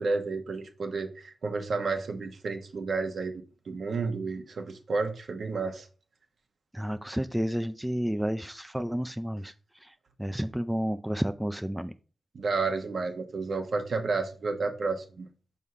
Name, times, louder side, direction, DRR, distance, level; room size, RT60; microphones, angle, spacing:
voice 1, 0.0-3.3 3.7-5.9 12.3-15.3, right 4 dB, 65° right, 1.2 m, -31 dB
voice 2, 6.7-9.5 9.8-9.9 10.2-11.9, equal, 5° right, 0.4 m, -31 dB
6.3 x 3.6 x 5.6 m
cardioid pair, 85°, 0 cm